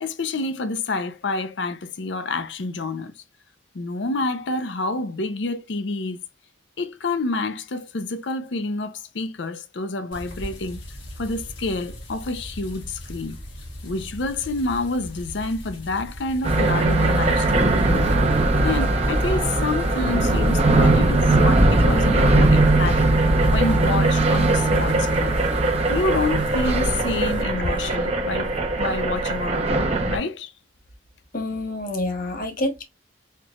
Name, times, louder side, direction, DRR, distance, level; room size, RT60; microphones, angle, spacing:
voice 1, 0.0-3.1 3.7-6.2 6.8-10.8 11.2-13.4 13.8-18.1 18.6-23.0 23.4-25.4 25.9-28.5 28.8-30.5, left 3 dB, 65° left, 0.6 m, -28 dB
sound 1, 10.1-27.4, equal, 85° left, 1.4 m, -38 dB
sound 2, 16.4-30.2, right 2 dB, 35° right, 0.8 m, -20 dB
voice 2, 31.3-32.8, left 1 dB, 50° left, 1.0 m, -27 dB
4.4 x 3.2 x 2.4 m
head